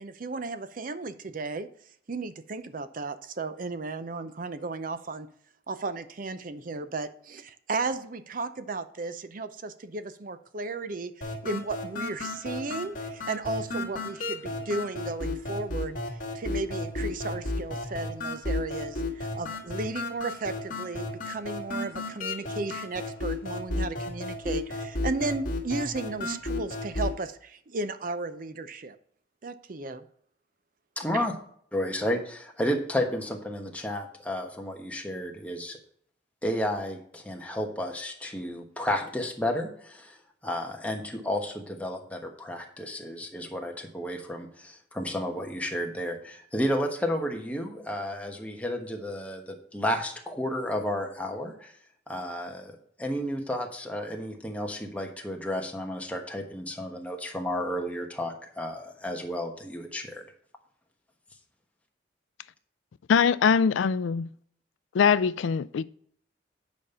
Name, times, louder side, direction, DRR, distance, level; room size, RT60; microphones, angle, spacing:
voice 1, 0.0-1.7 2.1-5.3 5.7-29.0 29.4-30.0 31.1-31.2, right 3 dB, 45° right, 0.6 m, -34 dB
sound 1, 11.2-27.2, left 2 dB, 45° left, 1.9 m, -33 dB
voice 2, 31.0-31.3 31.7-35.8 36.4-40.2 40.4-51.7 52.1-60.2, equal, 5° left, 1.2 m, -32 dB
voice 3, 63.1-64.3 64.9-65.8, left 6 dB, 85° left, 0.4 m, -22 dB
8.9 x 5.3 x 5.5 m
head